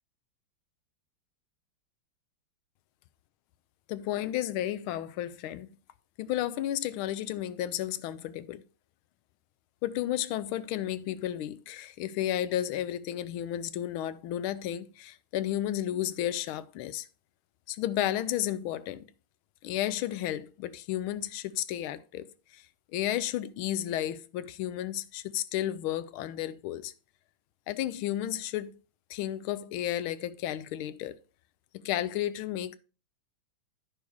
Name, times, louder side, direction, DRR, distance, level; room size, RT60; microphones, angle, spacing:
voice 1, 3.9-5.8 6.2-8.6 9.8-17.1 17.7-19.1 19.6-26.9 27.7-28.8 29.1-31.2 31.8-32.8, left 12 dB, 85° left, 1.5 m, -32 dB
9.6 x 5.5 x 4.6 m
omnidirectional pair, 2.3 m